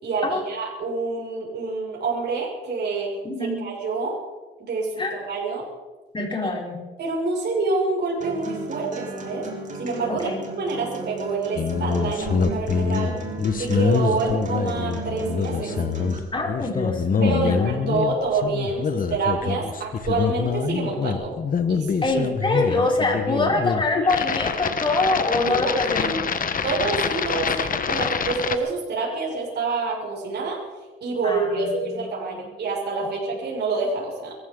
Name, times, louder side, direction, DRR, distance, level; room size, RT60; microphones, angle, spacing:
voice 1, 0.0-3.1 3.4-4.1 4.6-5.6 7.0-9.5 9.8-13.1 13.6-15.7 17.2-21.4 21.7-22.2 22.5-22.6 23.3-23.5 25.5-26.2 26.6-30.6 31.0-34.4, right 3 dB, 55° right, -4 dB, 6.4 m, -27 dB
voice 2, 3.2-3.6 5.0-5.2 6.1-6.8 10.1-10.4 16.3-17.9 22.0-26.4 31.2-32.0 32.3-32.4 33.0-33.1, left 2 dB, 25° left, -1 dB, 4.4 m, -25 dB
Acoustic guitar, 8.2-16.2, right 4 dB, 40° right, 4.0 m, -35 dB
sound 1, 11.6-28.6, left 6 dB, 45° left, 1.3 m, -25 dB
24.5 x 14.5 x 3.9 m, 1.3 s
cardioid pair, 90°, 20 cm